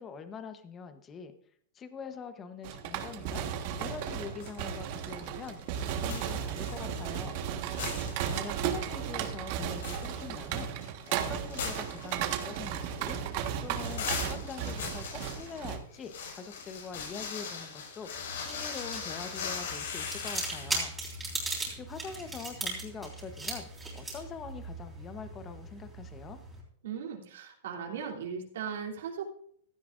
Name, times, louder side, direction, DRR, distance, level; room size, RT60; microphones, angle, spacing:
voice 1, 0.0-1.3 1.7-3.5 3.8-7.4 8.3-10.7 11.1-13.2 13.6-20.9 21.7-23.7 23.9-26.4, left 5 dB, 20° left, 9 dB, 1.0 m, -44 dB
sound 1, 2.6-15.8, right 8 dB, 45° right, 1.5 m, -35 dB
sound 2, 3.7-4.7 5.0-7.4 7.7-8.7 9.0-9.1 9.5-20.7, left 6 dB, 80° left, 5.7 m, -40 dB
sound 3, 18.1-26.6, right 2 dB, 5° right, 3.6 m, -39 dB
voice 2, 26.8-29.3, right 7 dB, 80° right, -1 dB, 3.2 m, -38 dB
16.0 x 12.0 x 2.6 m, 0.64 s
supercardioid pair, 160°, 0 cm